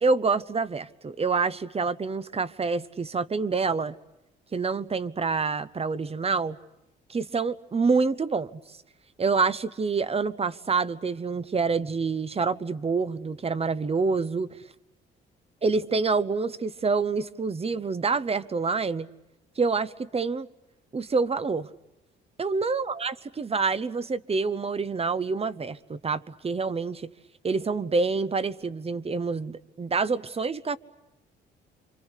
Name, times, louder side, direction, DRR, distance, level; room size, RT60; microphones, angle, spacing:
voice 1, 0.0-3.9 4.5-6.6 7.1-8.6 9.2-14.6 15.6-19.1 19.6-20.5 20.9-21.7 22.4-27.1 27.4-30.8, right 4 dB, 30° right, 1.1 m, -27 dB
28.5 x 25.0 x 8.2 m
cardioid pair, 90°, 20 cm